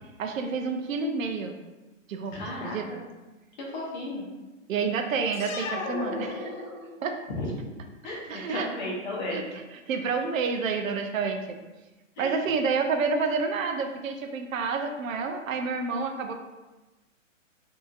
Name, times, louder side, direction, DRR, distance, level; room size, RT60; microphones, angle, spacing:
voice 1, 0.2-1.6 2.1-2.9 4.7-6.8 7.0-7.2 8.3-8.7 9.3-9.4 9.9-11.6 12.2-16.3, right 4 dB, 85° right, 4 dB, 0.5 m, -29 dB
voice 2, 2.3-3.0 3.6-4.2 7.3-7.5 8.0-9.4 12.2-12.4, left 2 dB, 35° left, -4 dB, 0.8 m, -34 dB
sound 1, 5.3-7.2, left 3 dB, 85° left, 0.6 m, -35 dB
2.7 x 2.6 x 2.4 m, 1.1 s
hypercardioid pair, 160°, 39 cm